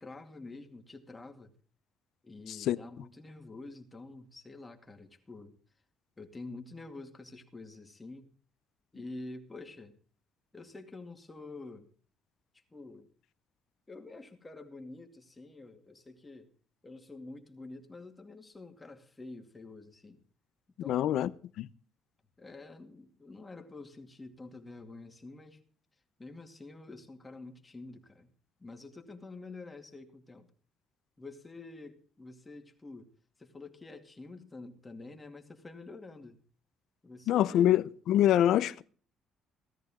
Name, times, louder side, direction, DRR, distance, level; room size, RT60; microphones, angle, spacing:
voice 1, 0.0-1.5 2.2-5.5 6.2-8.3 8.9-9.9 10.5-11.9 12.5-13.1 13.9-16.5 16.8-20.2 20.8-21.4 22.4-25.6 26.2-28.3 28.6-30.5 31.2-33.1 33.4-36.4 37.0-37.9 38.4-38.5, left 3 dB, 15° left, 2.4 m, -48 dB
voice 2, 20.9-21.3 37.3-38.8, left 12 dB, 70° left, 0.7 m, -25 dB
17.0 x 14.0 x 3.7 m
cardioid pair, 125°, 0 cm